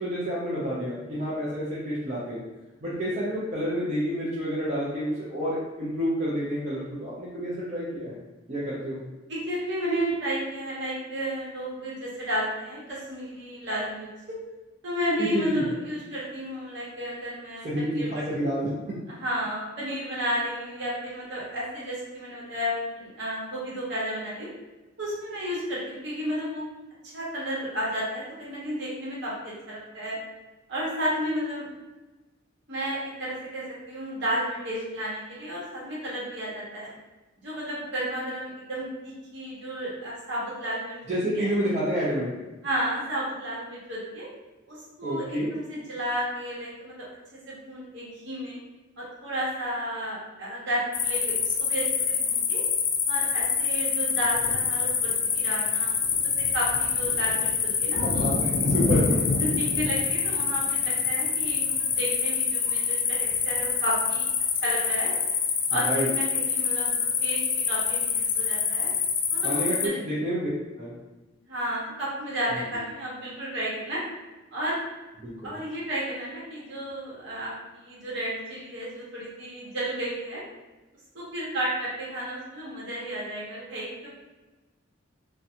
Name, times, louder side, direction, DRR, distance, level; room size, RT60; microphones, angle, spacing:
voice 1, 0.0-2.4 2.8-8.2 8.5-9.0 15.2-15.6 17.6-18.9 41.1-42.3 45.0-45.5 58.0-59.2 65.8-66.1 69.4-70.5 70.8-70.9 72.5-72.6 75.2-75.6, equal, 35° right, -9 dB, 0.5 m, -29 dB
voice 2, 9.3-14.1 14.8-18.2 19.2-24.5 25.0-26.7 27.1-30.2 30.7-31.7 32.7-36.9 37.4-41.0 41.4-41.5 42.6-44.3 44.7-47.1 47.5-48.6 49.0-52.6 53.1-57.5 57.8-58.3 59.4-64.3 64.6-65.2 65.7-68.9 69.3-70.0 71.5-74.0 74.5-74.8 75.4-80.4 81.1-84.1, equal, 60° right, -7 dB, 1.0 m, -32 dB
sound 1, 50.9-69.9, left 6 dB, 55° left, 0.3 m, -26 dB
2.5 x 2.2 x 2.7 m, 1.1 s
head